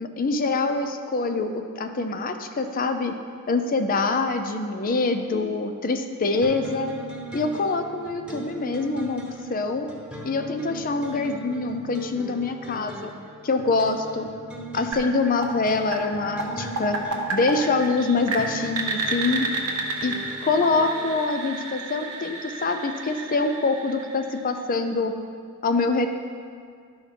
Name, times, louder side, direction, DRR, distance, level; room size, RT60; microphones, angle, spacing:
voice 1, 0.0-3.1 3.5-6.9 7.3-9.2 9.5-9.9 10.2-13.1 13.4-14.3 14.7-17.0 17.3-19.5 20.0-20.1 20.4-25.1 25.6-26.1, left 3 dB, 40° left, 7 dB, 0.6 m, -25 dB
sound 1, 6.4-21.2, right 1 dB, 5° right, 1.1 m, -40 dB
sound 2, 14.9-24.7, right 3 dB, 90° right, 1.1 m, -32 dB
12.0 x 4.7 x 5.3 m, 2.1 s
head